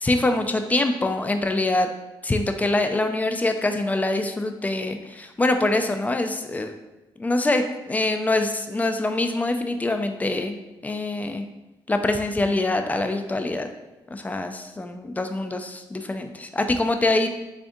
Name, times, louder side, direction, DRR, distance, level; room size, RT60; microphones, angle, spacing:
voice 1, 0.0-1.9 2.2-6.7 7.2-11.5 11.9-13.7 14.1-17.3, left 2 dB, 15° left, 6 dB, 0.3 m, -24 dB
3.5 x 2.6 x 3.6 m, 1.0 s
cardioid pair, 100°, 9 cm